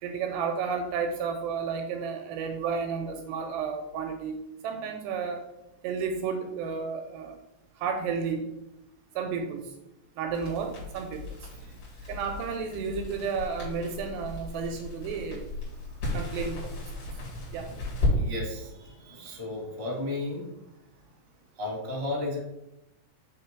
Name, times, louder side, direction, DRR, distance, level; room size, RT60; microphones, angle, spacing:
voice 1, 0.0-4.4 4.6-5.4 5.8-7.4 7.8-8.5 9.2-9.7 10.2-11.5 12.1-15.5 16.1-17.0 17.5-17.7, right 5 dB, 85° right, 5 dB, 2.5 m, -32 dB
Crackle, 10.3-18.1, left 2 dB, 35° left, 3.1 m, -35 dB
voice 2, 11.5-12.1 15.7-16.2 17.2-17.6 18.1-20.5 21.6-22.4, left 2 dB, 20° right, -4 dB, 0.9 m, -35 dB
7.2 x 3.7 x 4.5 m, 0.90 s
omnidirectional pair, 5.1 m